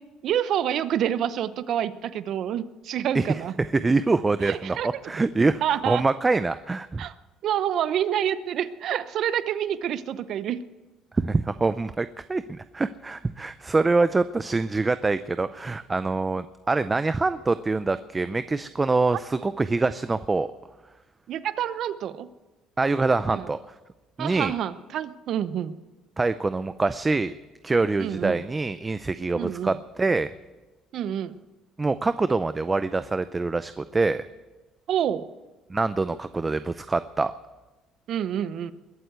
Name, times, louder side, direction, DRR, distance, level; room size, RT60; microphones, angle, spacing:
voice 1, 0.2-3.5 4.4-4.9 5.6-6.0 7.0-7.1 7.4-10.6 21.3-22.3 23.3-23.5 24.2-25.7 28.0-28.4 29.4-29.8 30.9-31.4 34.9-35.3 38.1-38.7, right 10 dB, 60° right, 14 dB, 0.8 m, -27 dB
voice 2, 3.7-7.0 11.2-20.5 22.8-23.6 24.2-24.5 26.2-27.3 27.6-30.3 31.8-34.2 35.7-37.3, right 3 dB, 20° right, 13 dB, 0.5 m, -25 dB
21.5 x 7.9 x 8.1 m, 1.1 s
cardioid pair, 105°, 0 cm